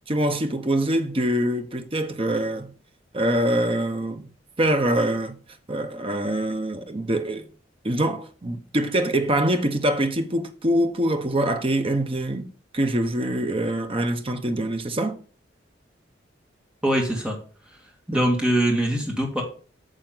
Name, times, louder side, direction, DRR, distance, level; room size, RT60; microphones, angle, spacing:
voice 1, 0.1-2.7 3.1-4.3 4.6-5.4 5.7-7.5 7.8-12.5 12.7-15.2 18.1-18.2, right 1 dB, 30° right, 0.9 m, -24 dB
voice 2, 16.8-17.4 18.1-19.4, right 1 dB, 5° right, 2.1 m, -22 dB
9.1 x 6.4 x 3.9 m
head